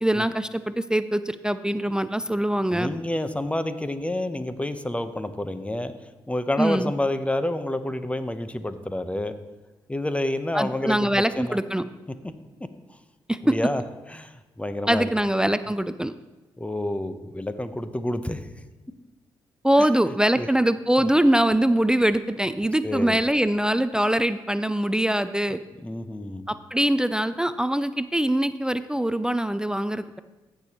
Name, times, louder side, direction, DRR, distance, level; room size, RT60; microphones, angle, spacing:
voice 1, 0.0-2.9 6.6-6.9 10.5-11.9 13.3-13.4 14.9-16.1 19.6-25.6 26.5-30.2, right 1 dB, 5° right, 12 dB, 0.4 m, -23 dB
voice 2, 2.7-5.9 6.3-9.3 9.9-11.6 12.2-12.3 13.4-13.8 14.1-15.1 16.6-18.4 19.8-19.9 20.4-20.5 22.8-23.2 25.8-26.4, left 1 dB, 10° left, 10 dB, 0.9 m, -28 dB
15.0 x 7.0 x 3.0 m, 1.1 s
hypercardioid pair, 45°, 10 cm